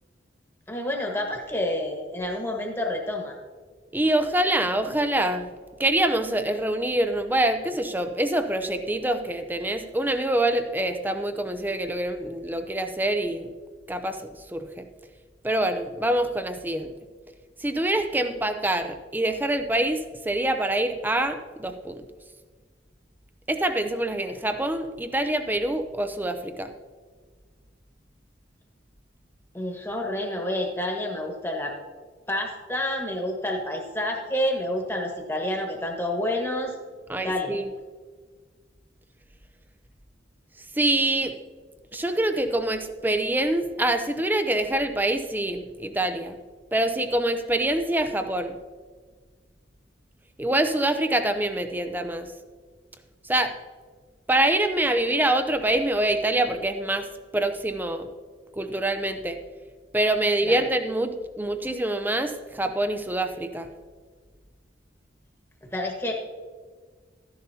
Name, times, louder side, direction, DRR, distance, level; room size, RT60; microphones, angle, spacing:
voice 1, 0.7-3.4 29.5-31.7 32.3-36.7 37.2-37.6 60.4-60.6 65.7-66.1, left 1 dB, 15° left, 1 dB, 1.4 m, -29 dB
voice 2, 3.9-13.5 13.9-14.9 15.4-16.9 17.6-22.1 23.5-26.7 37.1-37.7 40.7-41.4 41.9-46.4 46.7-48.6 50.4-52.3 53.2-53.6 54.3-57.1 57.3-58.1 58.6-59.4 59.9-63.7, right 1 dB, 10° right, 8 dB, 0.6 m, -25 dB
13.5 x 10.5 x 2.8 m, 1.5 s
head